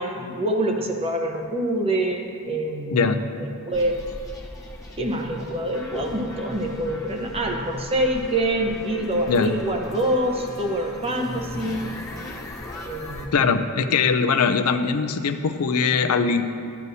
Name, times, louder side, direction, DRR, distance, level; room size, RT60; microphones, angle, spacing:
voice 1, 0.0-3.1 3.7-4.0 5.0-11.8 12.9-13.3, right 1 dB, 25° right, 2 dB, 0.9 m, -25 dB
sound 1, 3.7-13.3, left 1 dB, 15° left, 0.8 m, -38 dB
voice 2, 13.3-16.4, left 5 dB, 75° left, 9 dB, 0.5 m, -21 dB
12.0 x 9.3 x 2.8 m, 2.4 s
head